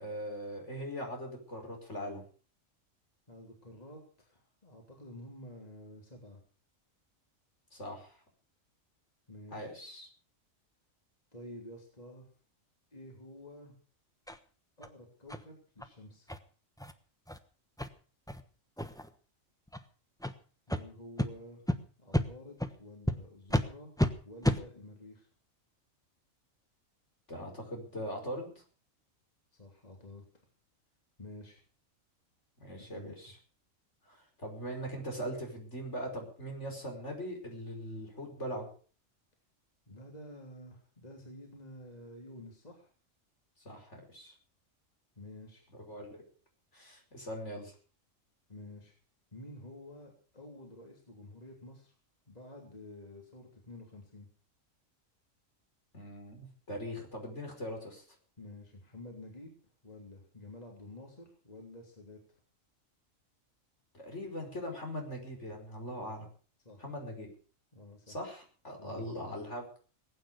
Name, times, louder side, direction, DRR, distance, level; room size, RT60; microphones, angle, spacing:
voice 1, 0.0-2.2 7.7-8.2 9.5-10.1 27.3-28.6 32.6-33.3 34.1-38.7 43.7-44.3 45.8-46.2 46.7-47.7 55.9-58.0 63.9-66.3 66.8-67.3 68.1-69.8, equal, 60° left, 2 dB, 5.5 m, -41 dB
voice 2, 3.3-6.4 9.3-9.7 11.3-12.3 12.9-13.7 14.8-16.3 20.7-21.6 22.0-23.9 24.2-25.3 29.5-30.2 31.2-31.6 32.7-33.3 39.9-42.9 45.2-45.6 48.5-48.9 49.3-51.9 52.3-54.3 58.4-59.5 59.8-62.2 66.6-66.9 67.7-68.2 68.8-69.1, left 1 dB, 30° left, 0 dB, 3.2 m, -50 dB
sound 1, 14.3-14.4 14.8-14.9 15.3-15.4 15.8-15.9 16.3-16.4 16.8-16.9 17.3-17.4 17.8-17.9 18.3-18.4 18.8-19.1 19.7-19.8 20.2-20.3 20.7-20.8 21.2-21.3 21.7-21.8 22.1-22.3 22.6-22.7 23.1-23.2 23.5-23.7 24.0-24.1 24.4-24.6, left 1 dB, 5° left, 1.0 m, -30 dB
20.0 x 9.4 x 6.5 m, 0.41 s
omnidirectional pair, 1.4 m